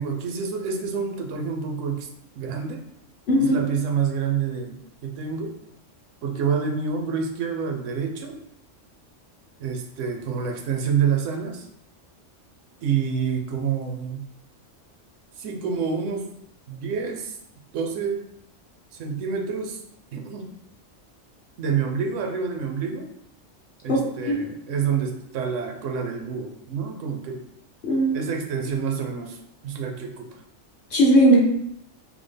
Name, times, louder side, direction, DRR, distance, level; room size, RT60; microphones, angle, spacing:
voice 1, 0.0-2.1 2.4-2.8 3.4-5.5 6.2-8.4 9.6-11.7 12.8-14.2 15.4-16.3 16.7-17.4 17.7-18.2 19.0-19.8 20.1-20.5 21.6-23.1 23.8-27.4 28.1-29.4 29.6-30.4, right 6 dB, 80° right, 2 dB, 0.9 m, -27 dB
voice 2, 3.3-3.6 23.9-24.0 24.3-24.4 27.8-28.2 30.9-31.4, right 1 dB, 55° left, -2 dB, 0.7 m, -17 dB
3.5 x 2.0 x 3.3 m, 0.77 s
omnidirectional pair, 1.3 m